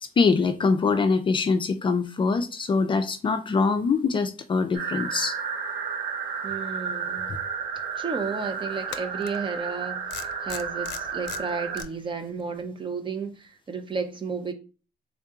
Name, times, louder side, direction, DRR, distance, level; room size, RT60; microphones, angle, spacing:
voice 1, 0.2-5.4, left 4 dB, 30° left, 0.5 m, -23 dB
sound 1, 4.7-11.8, right 6 dB, 70° right, 1.4 m, -32 dB
voice 2, 6.4-7.3 8.0-14.5, right 5 dB, 30° right, 0.7 m, -33 dB
sound 2, 7.5-7.6 8.9-9.4 10.1-11.9, left 11 dB, 85° left, 0.5 m, -38 dB
3.7 x 2.7 x 3.6 m
cardioid pair, 110°, 17 cm